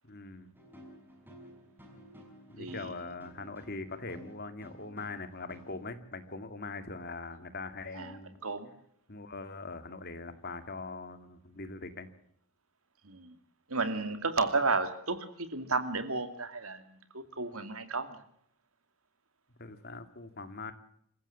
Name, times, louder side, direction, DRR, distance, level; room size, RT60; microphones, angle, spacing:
voice 1, 0.0-0.5 2.5-8.4 9.1-12.1 19.6-20.7, left 3 dB, 45° left, 10 dB, 2.2 m, -42 dB
sound 1, 0.5-5.9, equal, 10° right, 6.1 m, -53 dB
voice 2, 2.6-3.0 7.9-8.1 8.4-8.7 13.0-13.4 13.7-18.2, right 3 dB, 70° right, 10 dB, 2.6 m, -33 dB
26.5 x 15.5 x 7.1 m, 0.69 s
head